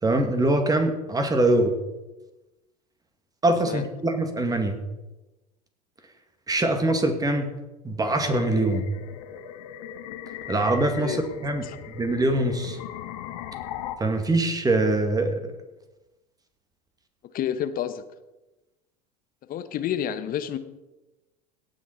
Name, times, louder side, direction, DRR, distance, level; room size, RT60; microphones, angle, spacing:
voice 1, 0.0-1.7 3.4-4.8 6.5-7.5 7.8-8.8 10.5-12.8 14.0-15.4, right 2 dB, 15° right, 6 dB, 2.0 m, -23 dB
sound 1, 8.0-13.9, left 10 dB, 70° left, 1.1 m, -38 dB
voice 2, 17.3-18.0 19.5-20.6, left 9 dB, 45° left, 11 dB, 1.1 m, -29 dB
17.5 x 6.4 x 4.5 m, 1.0 s
hypercardioid pair, 80°, 21 cm